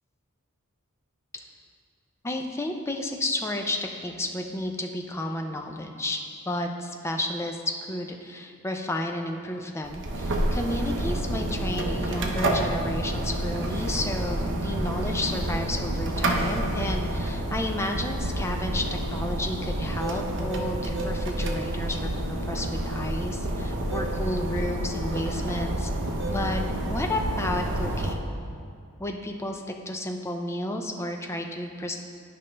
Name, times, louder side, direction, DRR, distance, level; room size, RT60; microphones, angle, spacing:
voice 1, 2.2-6.2 6.5-7.6 7.9-22.0 22.3-25.9 26.2-28.3 29.0-32.0, left 1 dB, 10° left, 3 dB, 0.4 m, -32 dB
sound 1, 9.8-28.2, right 1 dB, 55° right, 0.7 m, -29 dB
10.5 x 5.2 x 3.3 m, 2.3 s
head